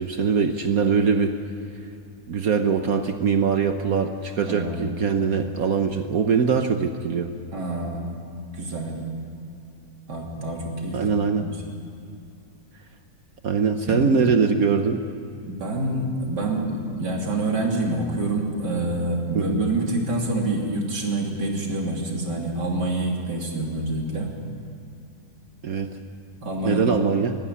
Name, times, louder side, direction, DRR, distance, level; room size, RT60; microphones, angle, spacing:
voice 1, 0.0-1.3 2.3-7.3 10.9-11.5 13.4-15.0 19.3-19.6 25.6-25.9 26.6-27.4, right 5 dB, 60° right, 7 dB, 1.3 m, -22 dB
voice 2, 4.4-4.9 7.5-8.0 8.5-9.0 10.1-11.6 13.9-14.1 15.4-24.3 26.4-27.0, right 2 dB, 80° right, -1 dB, 3.6 m, -27 dB
21.0 x 15.5 x 9.8 m, 2.6 s
omnidirectional pair, 1.8 m